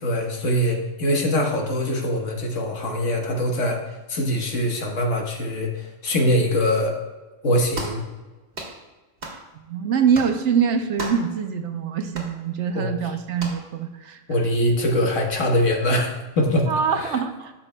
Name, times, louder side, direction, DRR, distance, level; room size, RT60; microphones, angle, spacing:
voice 1, 0.0-7.0 7.4-8.0 12.7-13.1 14.3-16.7 17.0-17.1, equal, 70° left, 2 dB, 1.5 m, -23 dB
sound 1, 7.7-8.0 8.5-8.8 9.2-9.4 10.1-10.4 11.0-11.3 12.1-12.3 13.4-13.6, right 2 dB, 50° right, 1.5 m, -33 dB
voice 2, 9.7-14.2 16.7-17.5, right 7 dB, 70° right, 7 dB, 0.9 m, -24 dB
13.0 x 5.9 x 2.2 m, 1.2 s
omnidirectional pair, 1.3 m